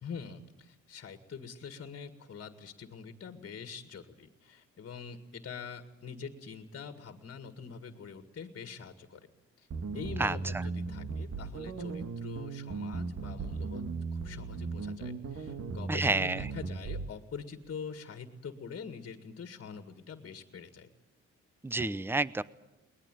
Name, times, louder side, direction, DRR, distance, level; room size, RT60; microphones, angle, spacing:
voice 1, 0.0-9.3 9.6-9.7 9.9-13.8 14.1-20.9, left 6 dB, 45° left, 8 dB, 2.0 m, -44 dB
sound 1, 9.7-17.1, right 4 dB, 50° right, 1.9 m, -37 dB
voice 2, 10.2-10.7 15.9-16.5 21.6-22.4, right 2 dB, 5° right, 18 dB, 0.7 m, -30 dB
22.5 x 19.5 x 9.3 m, 0.98 s
cardioid pair, 90°, 30 cm